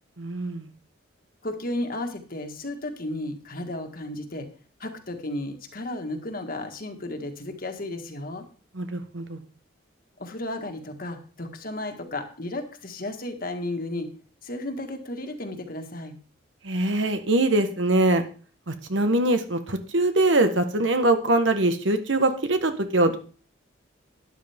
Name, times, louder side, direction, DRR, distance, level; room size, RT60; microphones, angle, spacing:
voice 1, 0.2-0.7 8.7-9.4 16.6-18.2 18.7-23.2, right 2 dB, 70° right, 8 dB, 1.4 m, -23 dB
voice 2, 1.4-4.5 4.8-8.5 10.2-14.1 14.4-16.2, left 1 dB, 50° left, 5 dB, 1.8 m, -33 dB
12.5 x 10.5 x 3.6 m, 0.39 s
head